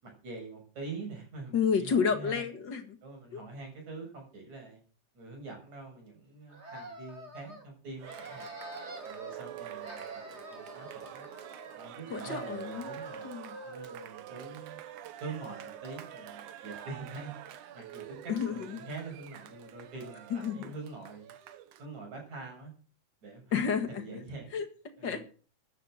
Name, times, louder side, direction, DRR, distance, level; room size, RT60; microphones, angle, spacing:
voice 1, 0.0-2.5 3.0-4.8 5.1-8.6 9.0-11.3 11.8-13.3 13.6-14.8 15.2-17.3 17.7-21.4 21.8-22.7 23.2-23.6 23.9-24.5 25.0-25.2, right 3 dB, 65° right, 8.4 m, -44 dB
voice 2, 1.5-3.0 3.3-3.4 12.1-12.9 13.2-13.6 18.3-18.8 20.3-20.7 23.5-24.0 24.5-24.7 25.0-25.2, left 6 dB, 40° left, 2.1 m, -30 dB
sound 1, 6.5-7.6 8.0-9.4 9.7-11.8 12.1-14.1, right 2 dB, 20° right, 3.4 m, -45 dB
Cheering, 8.0-21.8, right 10 dB, 90° right, 2.6 m, -46 dB
14.0 x 10.5 x 6.5 m
omnidirectional pair, 3.4 m